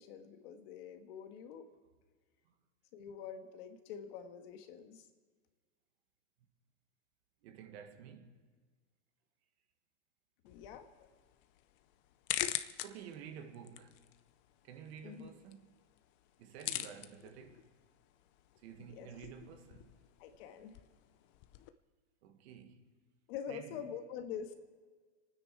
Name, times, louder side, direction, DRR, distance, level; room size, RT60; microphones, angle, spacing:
voice 1, 0.0-1.7 2.9-5.0 10.4-10.9 15.0-15.3 18.8-19.1 20.2-20.8 23.3-24.5, left 8 dB, 50° left, 1.7 m, -46 dB
voice 2, 7.4-8.4 12.8-14.2 14.6-15.7 16.4-17.8 18.6-20.1 22.2-23.0 23.5-23.9, right 8 dB, 60° right, 1.8 m, -51 dB
sound 1, 10.5-21.7, left 13 dB, 30° left, 0.6 m, -45 dB
28.5 x 9.7 x 4.7 m
supercardioid pair, 155°, 36 cm